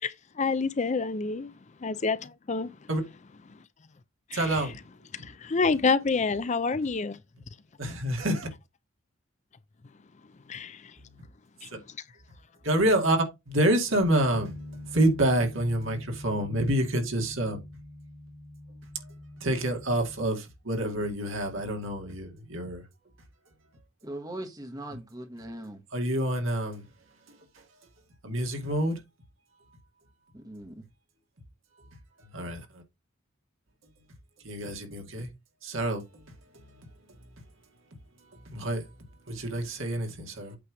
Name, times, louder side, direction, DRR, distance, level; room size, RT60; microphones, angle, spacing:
voice 1, 0.4-1.5 1.8-2.7 3.5-3.6 4.3-4.7 5.1-7.2 10.5-11.0 11.6-11.7, left 4 dB, 35° left, 0.5 m, -28 dB
voice 2, 4.3-4.8 7.8-8.5 12.6-13.2 13.5-17.6 19.4-22.8 25.9-26.9 28.2-29.0 32.3-32.8 34.4-35.3 35.6-36.0 38.5-38.8 39.3-40.6, right 1 dB, 70° right, 2.3 m, -27 dB
Bass guitar, 14.0-20.3, left 1 dB, 65° left, 1.9 m, -44 dB
voice 3, 24.0-25.8 30.3-30.8, right 1 dB, 20° right, 1.3 m, -40 dB
8.4 x 3.4 x 6.2 m
head